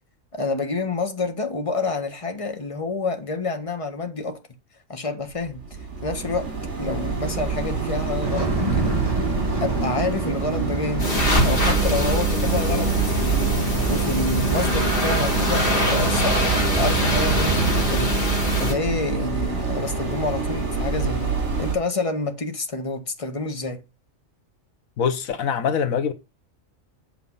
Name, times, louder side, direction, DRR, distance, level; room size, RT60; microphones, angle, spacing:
voice 1, 0.3-4.4 4.9-5.6 6.0-6.5 6.8-9.0 9.6-16.4 16.8-18.2 18.6-21.3 21.6-23.8, left 3 dB, 25° left, 1.5 m, -28 dB
sound 1, 5.4-21.8, right 5 dB, 60° right, 3.0 m, -27 dB
sound 2, 8.2-17.9, right 2 dB, 15° right, 2.7 m, -30 dB
sound 3, 11.0-18.7, right 1 dB, 40° left, 3.4 m, -23 dB
voice 2, 25.0-26.1, left 7 dB, 90° left, 1.5 m, -23 dB
8.6 x 6.9 x 5.4 m
omnidirectional pair, 1.4 m